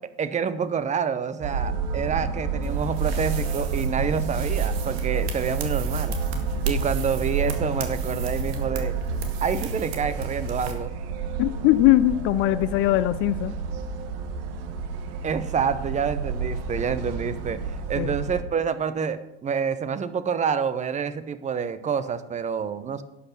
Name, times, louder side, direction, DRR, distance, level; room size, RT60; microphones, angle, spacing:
voice 1, 0.2-6.2 6.7-9.0 9.4-11.0 15.2-23.0, right 6 dB, 20° right, 14 dB, 0.9 m, -28 dB
sound 1, 1.4-18.4, right 5 dB, 45° right, 1.4 m, -30 dB
sound 2, 2.6-10.7, right 3 dB, 65° right, 2.1 m, -34 dB
voice 2, 11.4-13.5 18.0-18.1, left 15 dB, 40° left, 15 dB, 0.5 m, -20 dB
11.5 x 8.5 x 5.9 m, 0.90 s
figure-of-eight pair, 85°, 34 cm